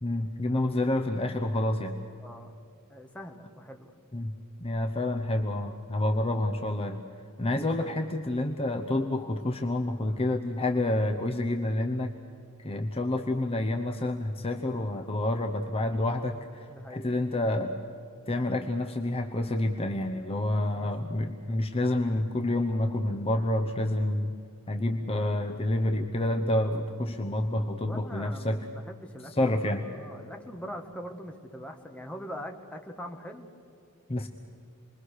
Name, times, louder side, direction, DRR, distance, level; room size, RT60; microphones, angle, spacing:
voice 1, 0.0-2.0 4.1-7.0 7.4-12.1 12.6-17.7 18.3-24.3 24.7-28.6 29.4-29.8 34.1-34.3, left 1 dB, 25° left, 5 dB, 0.9 m, -28 dB
voice 2, 2.2-2.6 2.9-3.9 16.7-17.8 20.5-20.9 27.8-29.5 29.8-33.5, equal, 5° left, 2 dB, 1.7 m, -43 dB
28.0 x 22.0 x 6.5 m, 2.6 s
head